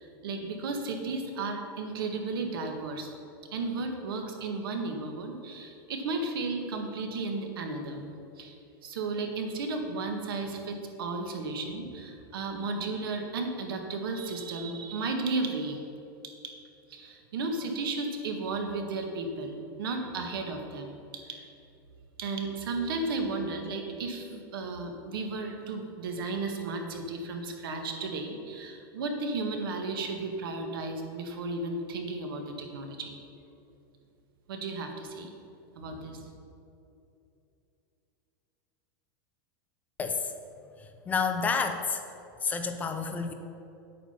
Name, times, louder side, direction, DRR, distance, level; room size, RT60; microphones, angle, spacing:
voice 1, 0.0-3.1 3.5-8.1 8.4-8.5 8.8-15.8 16.9-21.5 22.2-33.2 34.5-35.3 35.7-36.3, right 3 dB, 80° right, 4 dB, 1.7 m, -34 dB
voice 2, 40.0-40.3 41.1-42.0 42.4-43.3, left 5 dB, 15° left, 6 dB, 0.5 m, -29 dB
8.7 x 8.5 x 5.7 m, 2.7 s
supercardioid pair, 165°, 12 cm